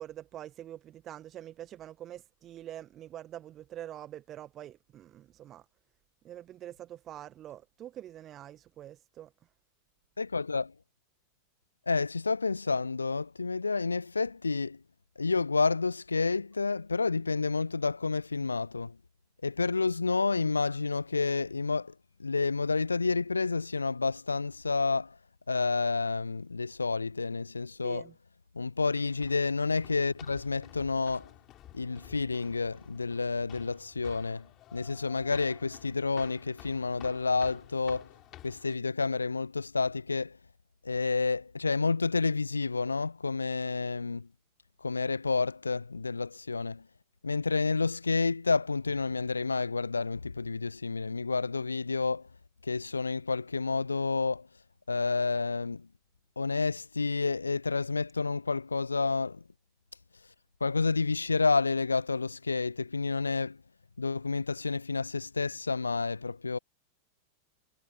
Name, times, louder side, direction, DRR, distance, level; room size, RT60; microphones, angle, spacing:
voice 1, 0.0-5.6 6.2-9.3 27.8-28.1, right 12 dB, 30° right, 1.5 m, -45 dB
voice 2, 10.2-10.7 11.9-14.8 15.2-19.0 19.4-21.9 22.2-25.2 25.5-28.1 28.5-31.3 31.7-38.1 38.4-40.4 40.8-44.3 44.8-46.8 47.2-52.3 52.6-54.5 54.9-55.9 56.4-59.4 60.6-63.6 64.0-66.6, left 4 dB, 80° left, 0.7 m, -30 dB
sound 1, 28.9-38.8, left 15 dB, 35° left, 4.7 m, -52 dB
figure-of-eight pair, 90°, 0 cm